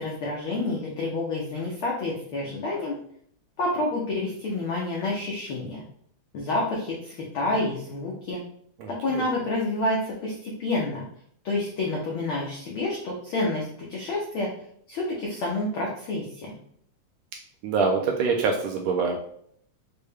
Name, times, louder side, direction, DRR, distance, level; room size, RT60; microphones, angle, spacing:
voice 1, 0.0-2.9 3.6-5.8 6.3-8.4 8.9-11.0 11.4-14.5 14.9-16.5, left 2 dB, 80° left, -3 dB, 1.1 m, -28 dB
voice 2, 8.8-9.2 17.6-19.2, right 5 dB, 80° right, 1 dB, 1.6 m, -25 dB
6.4 x 2.2 x 3.4 m, 0.65 s
omnidirectional pair, 3.4 m